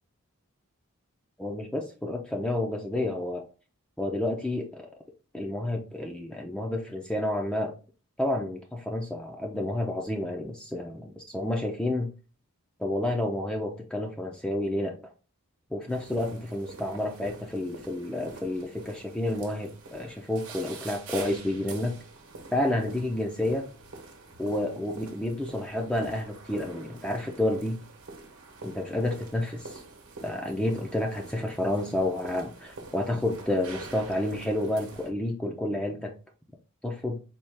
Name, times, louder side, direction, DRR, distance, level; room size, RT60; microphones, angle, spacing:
voice 1, 1.4-3.4 4.0-4.9 5.3-7.7 8.2-12.1 12.8-15.0 15.7-22.0 22.5-23.7 24.4-27.8 28.6-29.8 30.2-36.1 36.8-37.2, left 1 dB, 5° left, 2 dB, 0.4 m, -30 dB
sound 1, 15.9-35.1, right 3 dB, 70° right, 1.0 m, -46 dB
4.3 x 2.3 x 3.3 m, 0.34 s
head